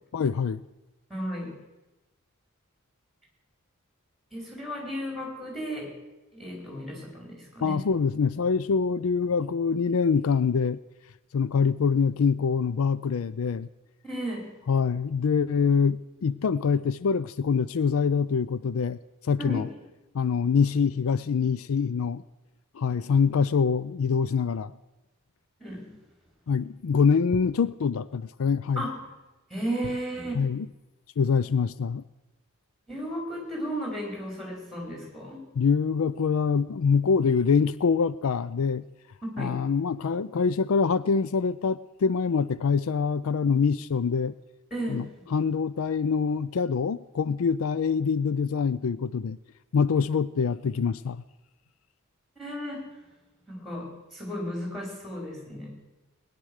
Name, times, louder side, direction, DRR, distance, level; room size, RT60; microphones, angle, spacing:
voice 1, 0.1-0.6 7.6-10.8 11.3-13.7 14.7-19.0 19.2-19.7 20.1-22.2 22.7-24.7 26.5-28.8 30.3-30.7 31.2-32.0 35.6-38.8 39.4-44.3 44.9-45.1 45.3-49.4 49.7-51.2, left 5 dB, 70° left, 17 dB, 0.4 m, -25 dB
voice 2, 1.1-1.5 4.3-5.9 6.3-7.8 14.0-14.5 19.4-19.6 25.6-25.9 28.7-28.9 29.5-30.4 32.9-35.4 39.2-39.6 44.7-45.1 52.3-52.8 53.5-55.7, equal, ahead, 0 dB, 5.0 m, -34 dB
20.5 x 10.5 x 6.4 m, 1.0 s
head